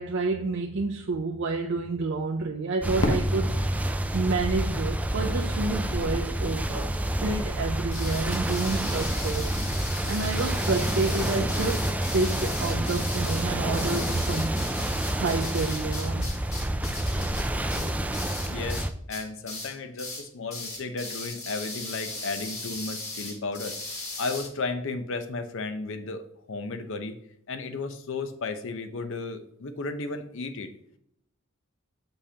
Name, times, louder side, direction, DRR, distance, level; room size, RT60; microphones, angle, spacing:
voice 1, 0.0-3.6 4.1-9.5 10.1-14.5 15.1-16.3, right 3 dB, 60° right, 0.5 m, -29 dB
sound 1, 2.8-18.9, right 1 dB, 5° right, 0.3 m, -28 dB
Fireworks, 3.0-5.9, left 1 dB, 90° left, 1.1 m, -33 dB
sound 2, 7.9-18.8 19.1-19.7 20.0-20.2 20.5-24.5, left 2 dB, 35° left, 2.4 m, -37 dB
voice 2, 17.7-18.0 18.5-23.8 24.2-27.2 27.5-30.7, left 3 dB, 65° left, 0.7 m, -34 dB
6.5 x 5.3 x 2.8 m
head